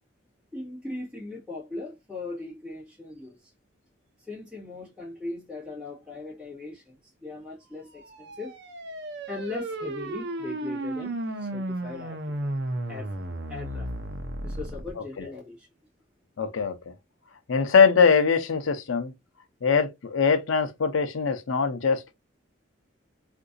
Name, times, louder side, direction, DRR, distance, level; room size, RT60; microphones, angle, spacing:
voice 1, 0.5-3.4 4.2-6.9 7.2-8.6 9.3-12.2 12.4-12.5 12.9-13.1 13.5-13.9 14.4-15.7, left 3 dB, 5° right, 1.7 m, -39 dB
sound 1, 8.0-14.9, right 1 dB, 60° right, 0.6 m, -34 dB
voice 2, 15.0-15.3 16.4-16.8 17.5-19.1 19.6-22.1, left 5 dB, 75° left, 0.6 m, -22 dB
3.7 x 2.6 x 2.5 m
head